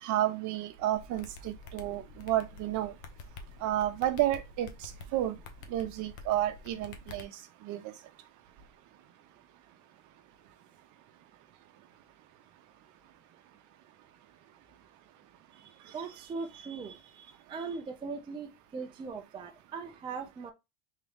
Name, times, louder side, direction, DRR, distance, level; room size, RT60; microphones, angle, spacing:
voice 1, 0.0-2.9 3.6-5.4 5.7-7.3 7.6-7.9, right 13 dB, 45° right, 0.8 m, -31 dB
sound 1, 0.9-7.2, left 3 dB, 60° left, 1.0 m, -48 dB
voice 2, 15.5-20.5, right 4 dB, 15° right, 0.4 m, -40 dB
3.7 x 2.9 x 3.4 m
supercardioid pair, 125°, 41 cm